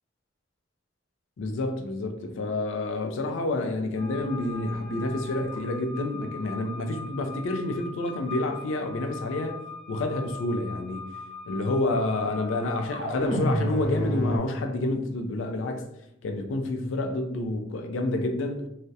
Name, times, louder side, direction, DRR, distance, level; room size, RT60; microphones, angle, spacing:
voice 1, 1.4-9.6 9.9-11.1 11.5-15.8 16.2-18.7, left 2 dB, 80° left, 0.4 m, -29 dB
sound 1, 4.0-14.4, left 1 dB, 80° right, 0.8 m, -35 dB
2.3 x 2.0 x 2.6 m
head